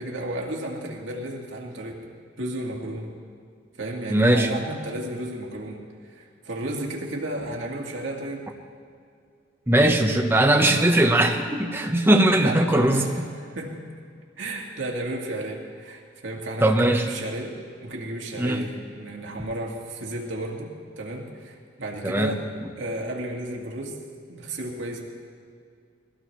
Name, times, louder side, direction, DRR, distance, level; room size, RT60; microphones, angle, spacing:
voice 1, 0.0-2.1 2.4-3.1 3.8-8.5 12.4-13.9 14.4-22.5 22.8-24.0 24.3-25.0, right 1 dB, 80° right, -1 dB, 2.0 m, -33 dB
voice 2, 4.1-4.5 9.7-13.0 16.6-17.1 18.4-18.6 22.0-22.4, right 1 dB, 10° right, 3 dB, 1.0 m, -19 dB
22.0 x 16.5 x 3.2 m, 2.2 s
head